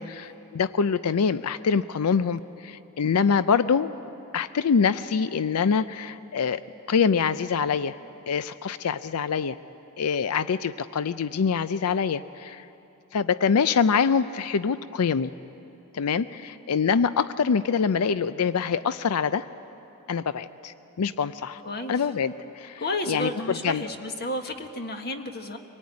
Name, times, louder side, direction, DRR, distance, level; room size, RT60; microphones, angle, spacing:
voice 1, 0.0-3.9 4.3-6.6 6.9-8.0 8.3-9.6 10.0-12.7 13.1-15.3 15.9-19.5 20.1-21.6 21.9-22.8 23.1-23.8, left 6 dB, 90° left, 14 dB, 0.5 m, -25 dB
voice 2, 21.6-21.9 22.8-25.6, left 1 dB, 45° left, 5 dB, 1.6 m, -32 dB
25.0 x 18.5 x 9.6 m, 3.0 s
head